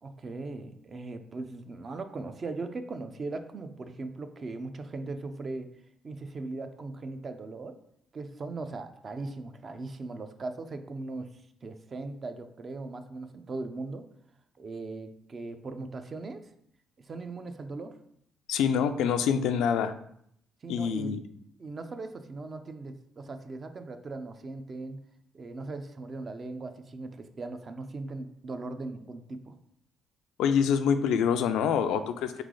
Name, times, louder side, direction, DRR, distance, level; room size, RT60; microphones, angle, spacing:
voice 1, 0.0-5.7 6.0-7.8 8.1-11.3 11.6-14.1 14.6-16.4 17.0-17.9 20.6-21.1 21.6-25.0 25.3-29.6, right 3 dB, 40° right, 8 dB, 0.5 m, -39 dB
voice 2, 18.5-19.9 20.7-21.2 30.4-32.4, left 7 dB, 90° left, 9 dB, 0.3 m, -26 dB
3.9 x 3.2 x 3.7 m, 0.69 s
cardioid pair, 90°, 0 cm